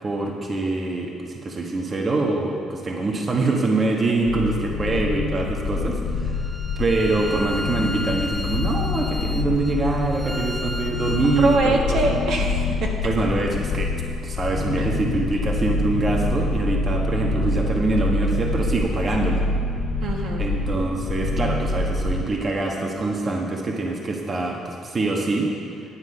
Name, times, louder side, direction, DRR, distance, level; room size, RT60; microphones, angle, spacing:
voice 1, 0.0-6.4 6.8-12.1 13.0-13.9 14.2-19.4 20.4-25.5, right 2 dB, 35° right, 0 dB, 1.1 m, -24 dB
sound 1, 4.3-22.2, left 3 dB, 65° left, 0.6 m, -26 dB
Bowed string instrument, 6.3-11.7, equal, ahead, 0.5 m, -35 dB
voice 2, 11.4-12.9 14.8-14.9 20.0-20.5, right 3 dB, 70° right, 0 dB, 1.5 m, -24 dB
9.9 x 8.2 x 5.4 m, 2.4 s
cardioid pair, 105°, 0 cm